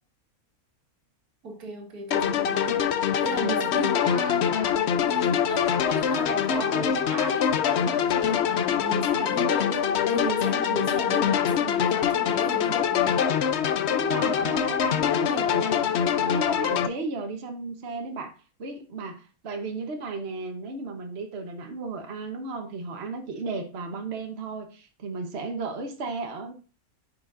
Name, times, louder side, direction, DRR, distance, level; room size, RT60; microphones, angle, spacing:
voice 1, 1.4-2.8 3.2-13.2 15.3-15.5, right 2 dB, 85° right, 2.1 m, -35 dB
sound 1, 2.1-16.9, left 8 dB, 60° left, 0.8 m, -24 dB
voice 2, 13.9-15.9 16.2-26.5, right 3 dB, 50° right, 1.2 m, -34 dB
9.4 x 6.0 x 2.5 m
omnidirectional pair, 1.5 m